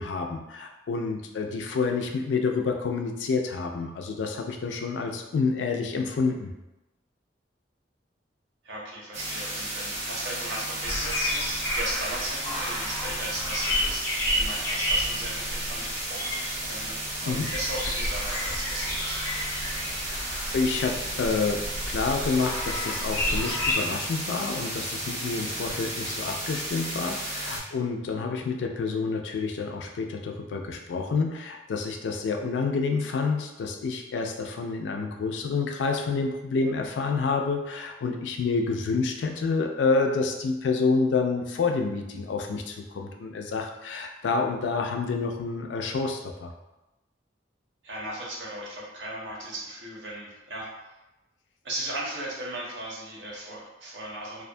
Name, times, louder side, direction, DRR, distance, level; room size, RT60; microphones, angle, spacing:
voice 1, 0.0-6.5 17.2-17.5 20.0-20.2 20.5-46.5, left 4 dB, 80° left, 3 dB, 0.3 m, -28 dB
voice 2, 8.6-19.2 47.8-50.7 51.6-54.4, right 1 dB, 70° right, -4 dB, 0.8 m, -37 dB
sound 1, 9.1-27.6, right 1 dB, 40° right, 0.6 m, -34 dB
sound 2, 10.8-23.7, left 1 dB, 15° left, 0.5 m, -31 dB
2.5 x 2.2 x 2.6 m, 1.0 s
head